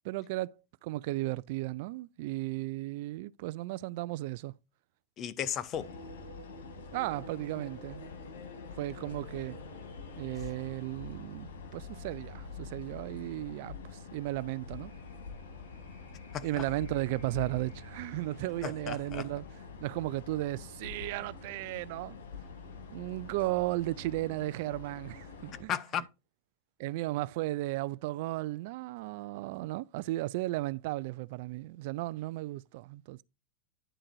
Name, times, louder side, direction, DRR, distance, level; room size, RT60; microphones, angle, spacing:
voice 1, 0.0-0.5 0.8-4.5 6.9-8.1 8.7-9.6 10.2-14.9 16.4-19.4 19.8-22.2 22.9-25.7 26.8-33.2, right 18 dB, 60° right, 0.3 m, -35 dB
voice 2, 5.2-5.9 16.3-16.7 18.6-19.3 25.7-26.0, left 9 dB, 35° left, 0.7 m, -35 dB
sound 1, 5.7-25.6, left 4 dB, 80° left, 2.4 m, -46 dB
10.0 x 3.8 x 4.5 m
hypercardioid pair, 130°, 0 cm